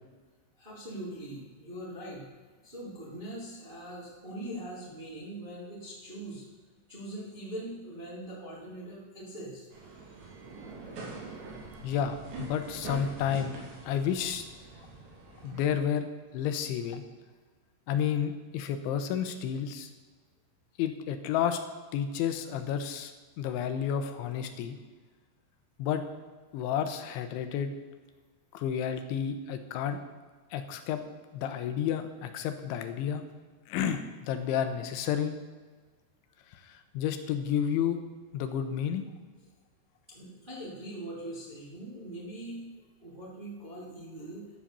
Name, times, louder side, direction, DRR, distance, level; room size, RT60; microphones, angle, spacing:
voice 1, 0.6-2.3 2.6-6.5 6.9-9.6 40.1-44.5, right 1 dB, 15° right, -5 dB, 2.0 m, -42 dB
sound 1, 9.7-15.7, right 3 dB, 70° right, 4.9 m, -44 dB
voice 2, 11.8-13.6 13.8-14.4 15.4-16.1 16.3-17.0 17.9-19.9 20.8-21.6 21.9-23.1 23.4-24.8 25.8-26.0 26.5-27.7 28.5-30.0 30.5-31.0 31.3-33.2 33.7-35.4 36.5-38.0 38.3-39.0, left 9 dB, 85° left, 8 dB, 3.3 m, -31 dB
12.0 x 7.6 x 6.9 m, 1.4 s
omnidirectional pair, 5.3 m